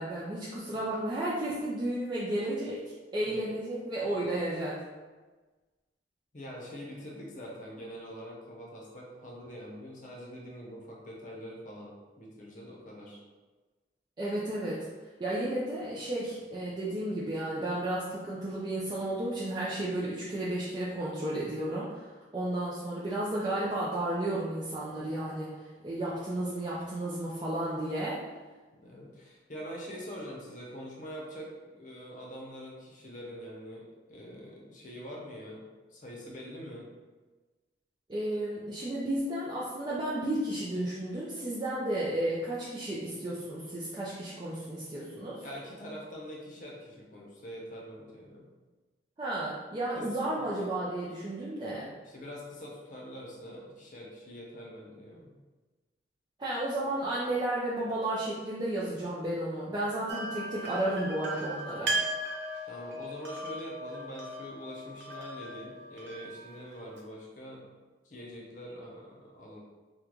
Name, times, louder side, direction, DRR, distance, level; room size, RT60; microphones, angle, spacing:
voice 1, 0.0-2.8 3.1-4.8 14.2-14.9 15.2-21.9 22.3-25.5 25.8-28.2 38.1-45.4 49.2-51.9 56.4-61.9, right 1 dB, 25° right, -7 dB, 0.4 m, -33 dB
voice 2, 3.1-3.5 6.3-13.2 28.8-35.7 35.9-36.9 45.4-48.5 49.9-50.1 50.4-50.5 52.0-55.4 61.7-67.7 68.0-69.6, equal, 45° left, -3 dB, 0.7 m, -44 dB
sound 1, 60.1-67.0, right 1 dB, 70° right, 0.6 m, -37 dB
3.7 x 2.2 x 3.0 m, 1.3 s
head